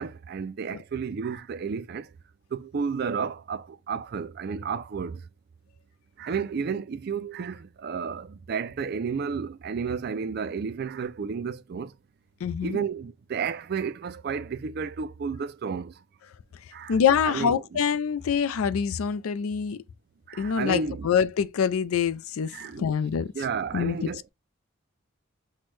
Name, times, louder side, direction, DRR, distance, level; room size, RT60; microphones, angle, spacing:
voice 1, 0.0-2.1 2.5-5.3 6.2-11.9 12.6-15.9 16.7-17.0 17.3-17.6 20.3-21.1 22.5-22.9 23.4-24.3, right 6 dB, 50° right, 0.3 m, -32 dB
voice 2, 12.4-12.8 16.9-19.8 20.4-23.3 23.7-24.1, left 7 dB, 85° left, 0.4 m, -25 dB
6.0 x 2.2 x 3.1 m
head